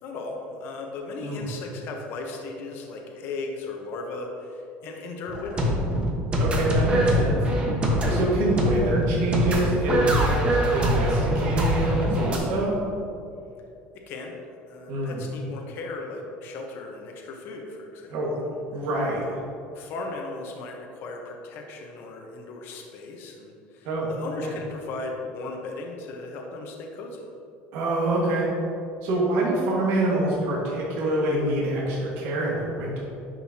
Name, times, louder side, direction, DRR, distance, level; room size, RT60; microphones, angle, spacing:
voice 1, 0.0-5.7 14.0-14.3 14.7-18.1 19.7-27.3, left 3 dB, 55° left, 1 dB, 0.9 m, -36 dB
sound 1, 5.3-12.4, equal, 25° right, 1.2 m, -23 dB
voice 2, 6.3-7.4 8.1-12.8 14.9-15.2 18.1-18.3 18.7-19.4 23.8-24.1 24.4-24.5 27.7-28.5 29.0-33.0, right 1 dB, 70° right, -5 dB, 1.7 m, -26 dB
10.5 x 5.4 x 2.8 m, 2.6 s
cardioid pair, 135°, 4 cm